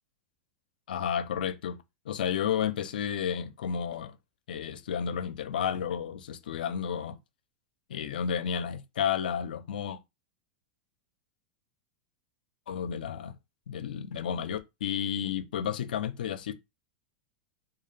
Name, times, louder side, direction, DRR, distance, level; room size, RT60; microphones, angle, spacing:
voice 1, 0.9-1.8 2.1-4.1 4.5-7.2 7.9-10.0 12.7-13.3 13.7-16.5, left 8 dB, 90° left, 0.4 m, -32 dB
2.4 x 2.3 x 3.2 m
supercardioid pair, 135°, 5 cm